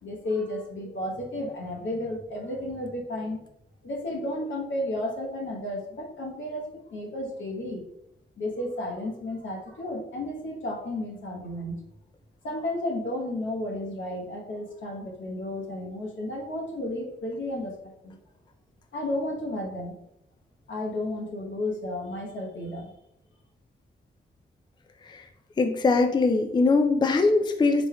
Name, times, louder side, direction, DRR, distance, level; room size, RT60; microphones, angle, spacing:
voice 1, 0.0-3.4 3.8-7.9 8.4-11.8 12.4-17.7 18.0-18.2 18.9-20.0 20.7-22.9, left 1 dB, 80° left, 0 dB, 1.0 m, -32 dB
voice 2, 25.6-27.9, left 3 dB, 25° left, 6 dB, 0.3 m, -21 dB
4.0 x 3.4 x 2.2 m, 0.79 s
cardioid pair, 60°, 19 cm